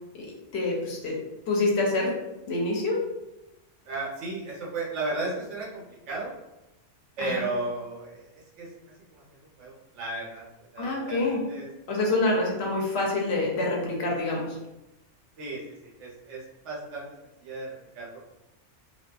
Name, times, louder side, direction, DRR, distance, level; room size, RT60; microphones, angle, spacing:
voice 1, 0.5-1.1 1.5-2.1 2.5-3.0 7.2-7.4 10.8-11.4 11.9-14.6, left 2 dB, 65° left, -1 dB, 0.8 m, -26 dB
voice 2, 3.8-6.3 7.2-10.4 10.7-11.7 12.0-12.2 15.4-17.7 17.9-18.2, right 2 dB, 75° right, -4 dB, 1.1 m, -35 dB
2.6 x 2.2 x 2.3 m, 0.95 s
omnidirectional pair, 1.3 m